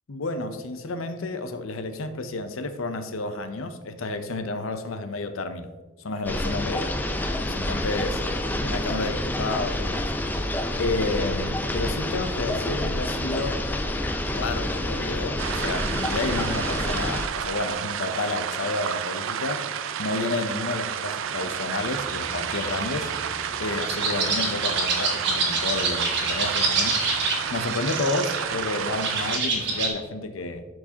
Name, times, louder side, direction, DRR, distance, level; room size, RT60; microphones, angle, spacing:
voice 1, 0.1-5.7 6.0-7.0 7.5-8.2 8.6-10.1 10.8-13.6 14.3-19.6 20.0-23.1 23.6-26.9 27.5-30.7, left 2 dB, 85° left, 10 dB, 0.6 m, -30 dB
sound 1, 6.3-17.3, left 1 dB, 10° left, 0.3 m, -28 dB
sound 2, 15.4-29.4, right 8 dB, 75° right, 0.4 m, -31 dB
sound 3, 21.8-29.9, right 3 dB, 55° right, 1.6 m, -28 dB
11.5 x 4.7 x 2.8 m, 1.3 s
head